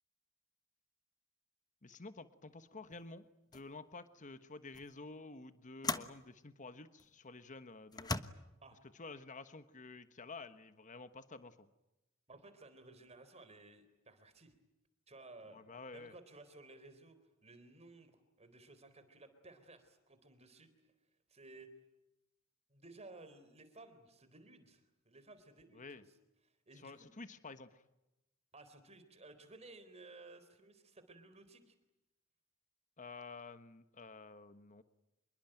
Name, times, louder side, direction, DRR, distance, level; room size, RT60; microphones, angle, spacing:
voice 1, 1.8-3.3 3.5-8.3 8.9-11.7 15.5-16.1 25.7-26.0 26.7-27.8 33.0-34.8, left 3 dB, 40° left, 11 dB, 1.3 m, -51 dB
sound 1, 2.9-3.1 3.5-3.8 4.7-4.9 5.8-6.2 7.0-7.1 7.9-8.2, left 3 dB, 20° left, 1.2 m, -38 dB
voice 2, 12.3-14.5 15.1-17.2 17.4-20.7 21.3-21.7 22.7-26.0 26.5-27.1 28.5-31.8, right 2 dB, 30° right, 10 dB, 3.9 m, -57 dB
27.0 x 22.5 x 9.1 m, 0.94 s
head